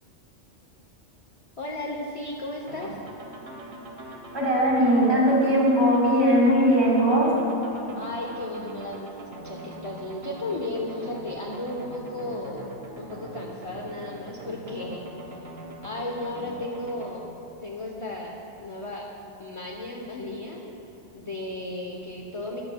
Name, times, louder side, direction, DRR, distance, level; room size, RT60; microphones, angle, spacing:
voice 1, 1.6-3.0 7.9-12.7 13.0-15.0 15.3-15.4 15.8-17.3 17.6-19.1 19.4-20.6 21.1-22.6, left 2 dB, 35° left, -1 dB, 0.6 m, -34 dB
sound 1, 2.7-17.1, right 2 dB, 60° right, 1.2 m, -42 dB
voice 2, 4.3-7.3, equal, 20° right, -6 dB, 2.2 m, -19 dB
13.5 x 9.7 x 2.2 m, 2.9 s
omnidirectional pair, 1.2 m